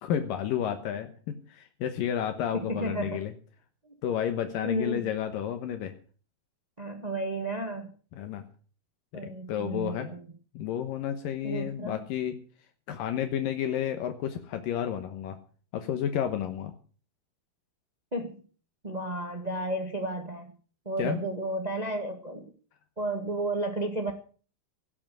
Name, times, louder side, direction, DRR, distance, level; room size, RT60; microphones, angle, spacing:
voice 1, 0.0-3.3 4.0-5.9 8.1-8.4 9.1-10.1 10.5-12.4 12.9-15.4 15.7-16.7 21.0-21.2, left 9 dB, 75° left, 8 dB, 2.7 m, -31 dB
voice 2, 2.5-3.2 3.8-3.9 4.6-5.0 6.8-7.9 9.1-10.3 11.4-12.0 18.1-18.4 18.8-20.5 20.8-22.4 23.0-24.1, right 2 dB, 80° right, 5 dB, 0.3 m, -32 dB
17.5 x 7.6 x 7.6 m, 0.41 s
omnidirectional pair, 4.1 m